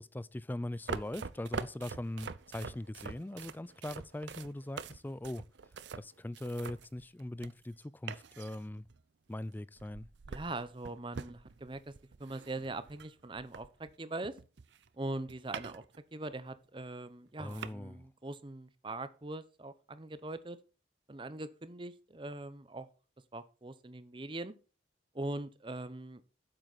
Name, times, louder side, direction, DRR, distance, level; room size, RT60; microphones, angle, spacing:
voice 1, 0.0-5.4 6.0-8.8 9.3-10.1 17.4-18.0, left 1 dB, 10° left, 0.3 m, -41 dB
sound 1, 0.9-7.7 8.1-9.0 9.8-13.9 14.2-16.0 16.3-16.4 17.1-17.2 17.5-17.7, right 5 dB, 80° right, 0.6 m, -45 dB
voice 2, 10.3-11.9 12.2-14.4 14.9-20.6 21.1-22.9 23.3-24.5 25.1-26.2, right 2 dB, 25° right, 0.7 m, -41 dB
8.8 x 7.8 x 4.1 m
head